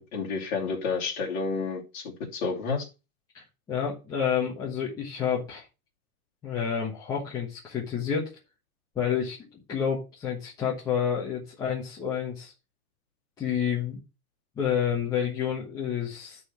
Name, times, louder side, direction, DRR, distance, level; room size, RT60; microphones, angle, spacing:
voice 1, 0.0-2.9, left 4 dB, 30° left, -2 dB, 2.9 m, -30 dB
voice 2, 3.3-5.6 6.4-8.3 8.9-12.5 13.4-14.0 14.6-16.4, left 8 dB, 10° left, -6 dB, 1.2 m, -29 dB
11.5 x 4.2 x 5.6 m, 0.29 s
supercardioid pair, 175°, 44 cm